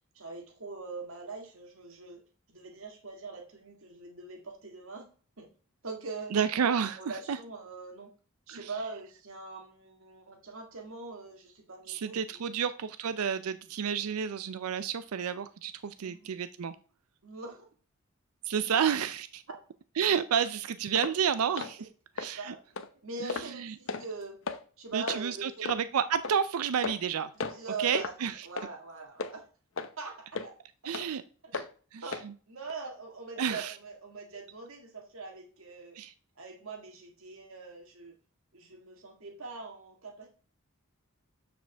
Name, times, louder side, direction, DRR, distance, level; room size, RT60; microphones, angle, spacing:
voice 1, 0.2-2.2 2.5-5.1 5.4-5.5 5.8-6.3 6.8-8.1 8.5-12.5 16.0-16.2 17.2-17.7 18.7-18.9 22.4-22.6 23.0-24.4 24.8-25.7 27.4-28.1 28.4-29.5 30.0-30.5 30.8-30.9 31.4-31.5 32.0-32.2 32.5-36.0 36.4-38.2 38.5-40.3, right 3 dB, 70° right, 2 dB, 1.8 m, -42 dB
voice 2, 6.3-7.0 7.3-7.4 8.5-8.7 11.9-16.8 18.4-19.4 20.0-21.9 22.2-22.5 23.2-23.7 24.9-27.3 27.8-28.5 30.8-31.2 31.5-32.3 33.4-33.7 36.0-36.1, right 7 dB, 85° right, 13 dB, 0.4 m, -30 dB
sound 1, 21.0-21.2 21.6-21.7 22.2-22.3 22.8-22.9 23.3-23.5 23.9-24.1 24.5-24.6 25.1-25.2 25.7-25.8 26.2-26.4 26.8-27.1 27.4-27.6 27.9-28.1 28.6-28.7 29.2-29.3 29.8-29.9 30.3-30.5 30.9-31.1 31.5-31.7 32.1-32.3 32.7-32.8, left 4 dB, 65° left, 0.7 m, -35 dB
12.0 x 5.1 x 3.4 m, 0.41 s
head